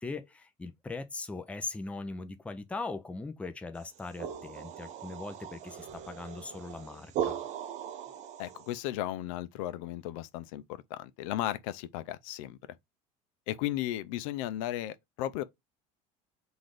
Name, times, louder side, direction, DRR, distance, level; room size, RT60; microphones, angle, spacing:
voice 1, 0.0-7.4, left 3 dB, 5° left, 0.5 m, -40 dB
sound 1, 3.8-8.8, right 9 dB, 45° right, 0.7 m, -39 dB
voice 2, 8.4-10.6 10.9-12.6 13.5-15.4, left 13 dB, 80° left, 0.5 m, -35 dB
3.9 x 2.6 x 4.8 m
supercardioid pair, 130°, 17 cm